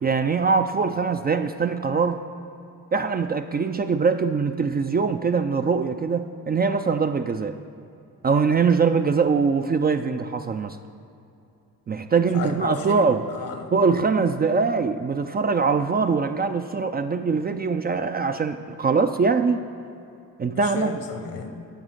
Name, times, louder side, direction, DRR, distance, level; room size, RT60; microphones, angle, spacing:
voice 1, 0.0-2.2 2.9-7.6 8.2-10.8 11.9-13.2 13.7-19.6 20.4-20.9, right 5 dB, 25° right, 8 dB, 0.4 m, -22 dB
voice 2, 12.3-13.7 20.5-21.6, left 5 dB, 65° left, 6 dB, 1.1 m, -33 dB
9.1 x 5.5 x 6.4 m, 2.7 s
supercardioid pair, 65°, 37 cm